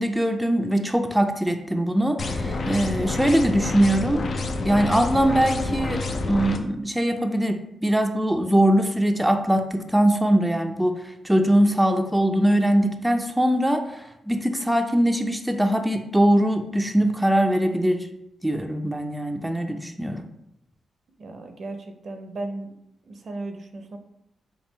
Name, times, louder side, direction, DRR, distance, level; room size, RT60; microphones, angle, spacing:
voice 1, 0.0-4.3 4.6-18.1 18.4-20.3, right 1 dB, 10° right, 5 dB, 0.4 m, -22 dB
sound 1, 2.2-6.6, left 3 dB, 55° left, 0.4 m, -28 dB
voice 2, 21.2-22.7 23.0-24.0, right 2 dB, 60° right, 5 dB, 0.5 m, -35 dB
3.6 x 2.3 x 4.0 m, 0.81 s
cardioid pair, 60°, 0 cm